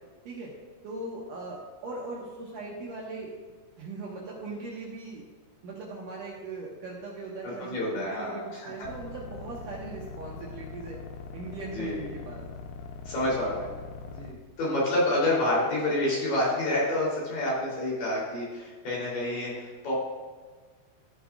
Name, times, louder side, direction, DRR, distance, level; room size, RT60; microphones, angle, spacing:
voice 1, 0.8-3.3 3.8-5.2 5.6-11.0 11.3-12.5 14.1-14.4, right 3 dB, 75° right, -4 dB, 1.9 m, -39 dB
voice 2, 7.6-8.9 11.7-12.1 13.1-13.7 14.6-19.9, left 1 dB, 45° left, -5 dB, 4.5 m, -28 dB
sound 1, 8.8-14.3, left 4 dB, 90° left, 3.3 m, -42 dB
13.0 x 11.0 x 2.4 m, 1.4 s
omnidirectional pair, 5.6 m